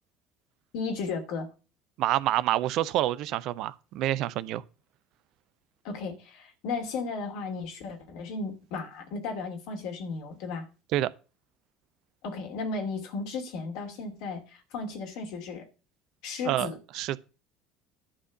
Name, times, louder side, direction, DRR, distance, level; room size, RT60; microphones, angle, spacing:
voice 1, 0.7-1.5 5.8-10.7 12.2-15.7 16.2-16.8, left 4 dB, 60° left, 2.7 m, -35 dB
voice 2, 2.0-4.6 10.9-11.1 16.4-17.2, right 14 dB, 55° right, 0.6 m, -27 dB
11.0 x 4.4 x 7.0 m
figure-of-eight pair, 65°, 0 cm